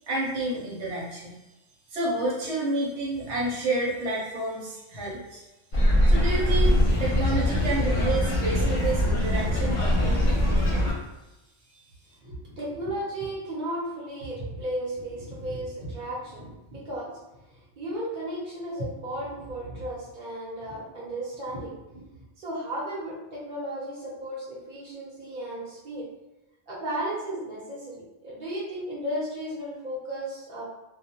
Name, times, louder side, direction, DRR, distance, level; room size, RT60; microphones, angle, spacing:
voice 1, 0.1-1.3 1.9-5.4 6.1-10.4, right 2 dB, 85° right, -5 dB, 1.0 m, -30 dB
sound 1, 5.7-10.9, left 1 dB, 55° left, 0.6 m, -22 dB
voice 2, 12.2-17.1 17.8-22.0 22.4-26.1 26.7-30.6, right 1 dB, 50° right, -6 dB, 1.0 m, -34 dB
2.3 x 2.0 x 2.8 m, 1.0 s
omnidirectional pair, 1.1 m